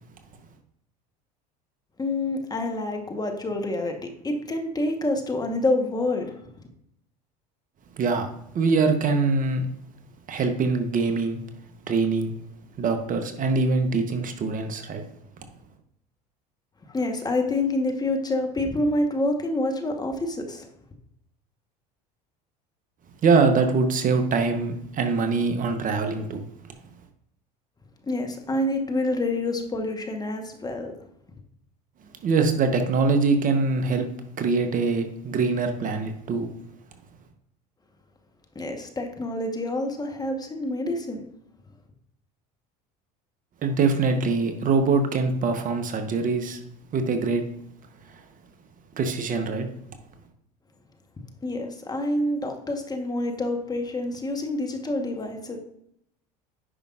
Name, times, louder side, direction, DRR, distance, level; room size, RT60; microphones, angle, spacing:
voice 1, 2.0-6.4 16.9-20.7 28.1-30.9 38.5-41.2 51.4-55.6, left 2 dB, 20° left, 4 dB, 1.2 m, -27 dB
voice 2, 8.0-8.3 8.5-9.7 10.3-11.4 11.9-12.3 12.8-15.0 23.2-26.4 32.2-34.1 34.4-36.5 43.6-46.6 46.9-47.4 48.1-48.2 49.0-49.7, right 4 dB, 40° right, 7 dB, 1.0 m, -23 dB
9.9 x 5.3 x 2.5 m, 0.73 s
hypercardioid pair, 80°, 21 cm